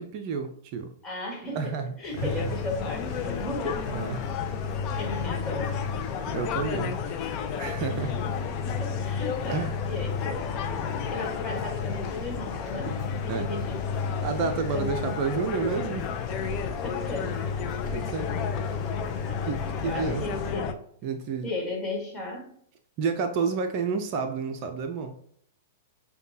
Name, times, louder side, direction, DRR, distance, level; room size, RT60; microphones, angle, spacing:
voice 1, 0.0-0.9 1.5-1.9 2.2-2.5 3.9-4.2 6.3-7.0 7.6-8.2 9.5-9.8 12.9-13.0 13.3-13.5 14.2-16.1 17.9-18.3 19.5-20.2 21.0-21.5 23.0-25.1, right 5 dB, 45° right, 6 dB, 0.5 m, -30 dB
voice 2, 1.0-1.7 2.0-3.9 4.9-5.8 7.9-8.2 8.5-10.8 11.1-13.8 14.7-15.1 16.8-17.4 19.2-19.5 19.8-20.8 21.4-22.6, left 2 dB, 20° left, -1 dB, 1.6 m, -35 dB
sound 1, 2.0-20.5, right 2 dB, 15° right, 1.7 m, -55 dB
sound 2, 2.2-20.7, left 6 dB, 40° left, 0.5 m, -31 dB
6.7 x 2.3 x 2.7 m, 0.67 s
hypercardioid pair, 110°, 0 cm